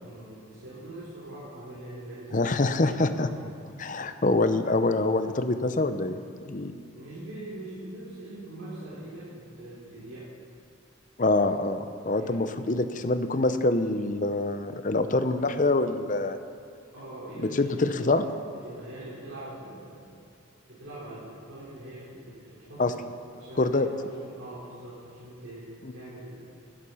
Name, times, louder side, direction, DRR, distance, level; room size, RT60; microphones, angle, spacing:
voice 1, 0.0-3.5 6.9-10.3 12.2-12.9 16.9-18.3 18.6-20.3 20.7-23.0 23.3-26.5, right 1 dB, 85° right, -9 dB, 3.8 m, -43 dB
voice 2, 2.3-3.3 3.8-6.2 6.4-6.7 11.2-16.4 17.4-18.2 22.8-22.9 23.6-23.9 25.8-25.9, left 2 dB, 40° left, 10 dB, 0.7 m, -25 dB
13.5 x 11.5 x 5.6 m, 2.4 s
head